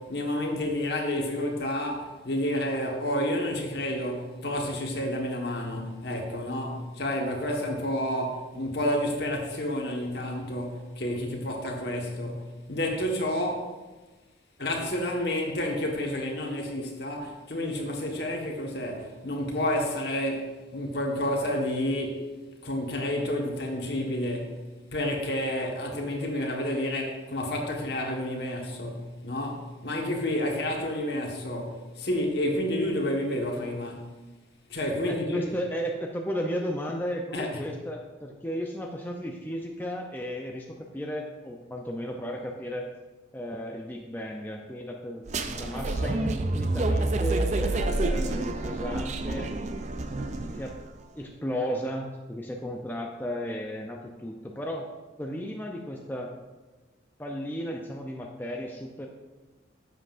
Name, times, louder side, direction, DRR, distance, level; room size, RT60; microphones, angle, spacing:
voice 1, 0.0-13.7 14.6-22.3 22.6-24.6 24.9-34.1 34.7-35.4 37.3-37.6, left 1 dB, 55° left, 1.4 m, -30 dB
voice 2, 35.0-42.9 43.3-49.5 50.5-50.8 51.2-54.9 55.2-56.3 57.2-59.1, equal, 10° left, 0.5 m, -34 dB
sound 1, 45.3-50.8, right 2 dB, 40° right, 0.5 m, -28 dB
11.0 x 7.6 x 2.5 m
head